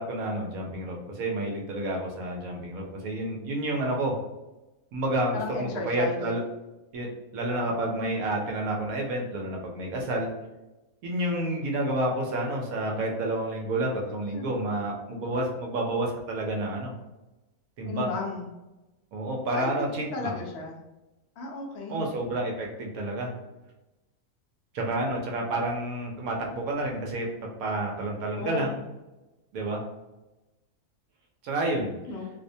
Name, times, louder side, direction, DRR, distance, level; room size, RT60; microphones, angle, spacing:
voice 1, 0.0-4.1 4.9-6.4 6.9-7.1 7.3-10.3 11.0-16.9 17.8-18.1 19.1-20.3 21.9-23.3 24.7-27.3 27.6-28.8 29.5-29.8 31.4-31.9, right 1 dB, 70° right, 0 dB, 1.0 m, -29 dB
voice 2, 5.3-6.2 14.3-14.4 17.8-18.5 19.5-19.7 20.1-20.8 21.4-22.1 28.3-28.7 32.1-32.3, left 4 dB, 70° left, -1 dB, 0.6 m, -34 dB
2.6 x 2.1 x 2.6 m, 1.0 s
omnidirectional pair, 1.6 m